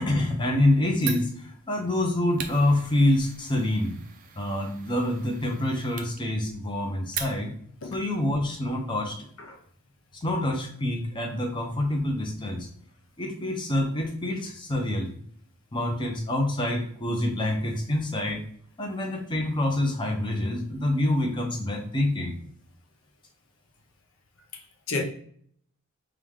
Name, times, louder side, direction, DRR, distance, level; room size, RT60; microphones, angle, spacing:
voice 1, 0.0-3.9 4.4-7.5 7.9-9.3 10.1-12.7 13.2-15.1 15.7-18.4 18.8-22.3, left 1 dB, 20° left, 0.7 m, -26 dB
Fire, 1.0-7.8, right 7 dB, 40° right, 0.4 m, -41 dB
voice 2, 24.5-25.0, left 3 dB, 60° left, 0.6 m, -32 dB
4.8 x 2.3 x 3.6 m
head